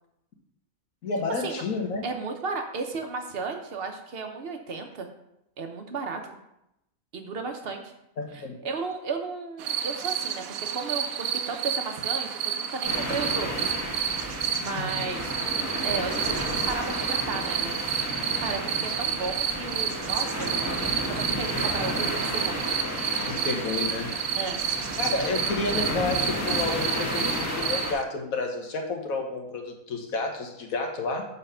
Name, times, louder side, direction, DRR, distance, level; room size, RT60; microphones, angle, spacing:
voice 1, 1.0-2.0 8.2-8.6 14.8-14.9 23.3-24.1 25.0-31.3, left 3 dB, 75° left, 3 dB, 1.4 m, -30 dB
voice 2, 2.0-5.1 5.6-6.3 7.1-7.9 8.3-13.8 14.0-20.5 21.1-22.6 24.3-24.6, right 4 dB, 50° right, 5 dB, 1.0 m, -34 dB
sound 1, 9.6-28.0, right 8 dB, 85° right, 1.1 m, -30 dB
sound 2, 12.8-27.9, equal, 10° left, 1.3 m, -32 dB
6.7 x 4.2 x 5.5 m, 0.83 s
omnidirectional pair, 1.5 m